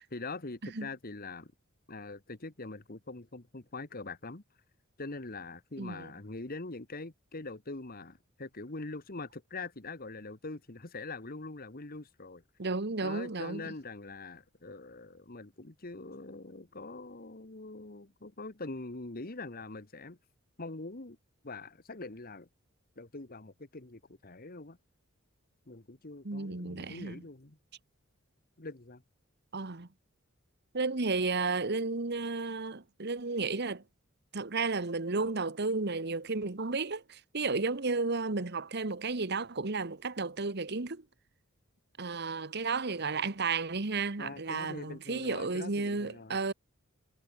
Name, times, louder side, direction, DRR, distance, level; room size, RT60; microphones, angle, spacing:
voice 1, 0.0-1.5 1.9-4.4 5.0-12.4 13.0-20.2 20.6-21.2 21.4-22.5 23.0-24.8 25.7-27.6 28.6-29.0 44.2-46.4, left 3 dB, 45° left, 1.6 m, -43 dB
voice 2, 5.8-6.1 12.6-13.7 26.2-27.2 29.5-29.9 30.7-33.8 34.3-41.0 42.0-46.5, right 3 dB, 50° right, 1.3 m, -33 dB
head